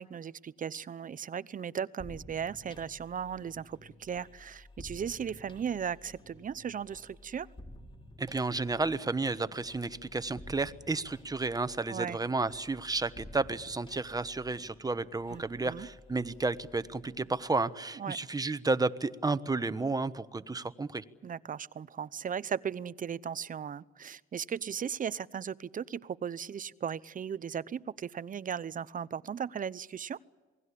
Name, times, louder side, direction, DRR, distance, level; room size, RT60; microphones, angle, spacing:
voice 1, 0.0-7.5 11.9-12.2 15.3-15.9 18.0-18.2 21.2-30.2, right 7 dB, 40° right, 17 dB, 0.8 m, -37 dB
sound 1, 2.0-17.6, left 1 dB, 25° left, 3.1 m, -53 dB
voice 2, 8.2-21.0, right 3 dB, 20° right, 13 dB, 1.2 m, -32 dB
28.0 x 20.5 x 8.5 m, 1.4 s
cardioid pair, 90°, 20 cm